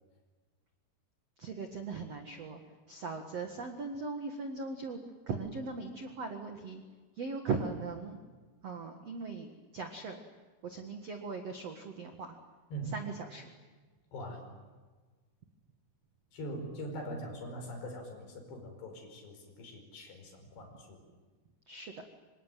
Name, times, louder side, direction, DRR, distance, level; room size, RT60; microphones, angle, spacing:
voice 1, 1.4-2.6 2.9-5.0 5.3-6.8 7.1-8.2 8.6-10.2 10.6-12.4 12.9-13.5 20.6-20.7 21.7-22.0, right 4 dB, 75° right, 5 dB, 1.4 m, -39 dB
voice 2, 12.7-13.0 14.1-14.5 16.3-21.0, right 1 dB, 55° left, 4 dB, 6.9 m, -42 dB
26.5 x 24.5 x 9.2 m, 1.4 s
omnidirectional pair, 6.0 m